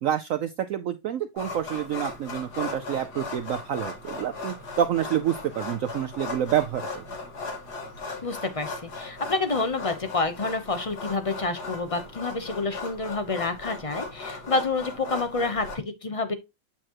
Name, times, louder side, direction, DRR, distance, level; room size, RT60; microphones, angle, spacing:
voice 1, 0.0-7.1, right 10 dB, 75° right, 0.7 m, -28 dB
sound 1, 1.4-15.7, left 3 dB, 65° left, 2.4 m, -37 dB
voice 2, 8.2-16.3, left 3 dB, 40° left, 0.4 m, -28 dB
8.6 x 4.6 x 2.9 m
omnidirectional pair, 1.9 m